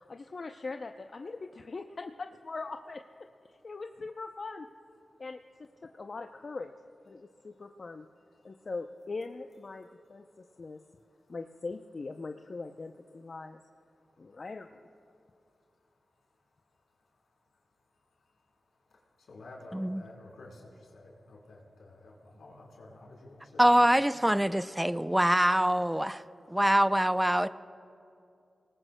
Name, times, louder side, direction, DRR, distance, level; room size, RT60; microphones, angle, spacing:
voice 1, 0.0-3.0 3.5-4.7 5.2-6.7 7.1-8.1 8.4-10.8 11.3-13.6 14.2-14.8, left 3 dB, 60° left, 0.5 m, -41 dB
voice 2, 3.3-3.8 5.0-5.3 5.9-6.0 7.1-7.6 8.3-8.7 10.2-10.8 11.1-11.4 13.9-14.4 15.2-23.9, left 2 dB, 85° left, 3.4 m, -54 dB
voice 3, 23.6-26.2 26.5-27.5, equal, 10° right, 0.4 m, -24 dB
30.0 x 19.0 x 2.2 m
cardioid pair, 45°, 0 cm